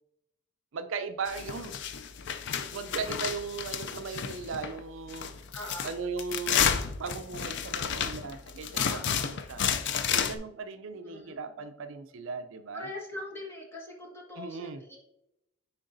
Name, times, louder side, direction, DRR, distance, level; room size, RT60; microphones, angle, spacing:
voice 1, 0.7-1.7 2.7-5.3 5.8-9.7 10.1-12.9 14.4-14.8, right 5 dB, 65° right, 0.4 m, -37 dB
sound 1, 1.3-4.8 5.1-10.4, left 7 dB, 60° left, 0.4 m, -31 dB
voice 2, 5.5-5.9 8.7-9.4 11.0-11.4 12.7-15.0, left 1 dB, 10° left, 1.5 m, -42 dB
9.7 x 3.8 x 2.6 m
head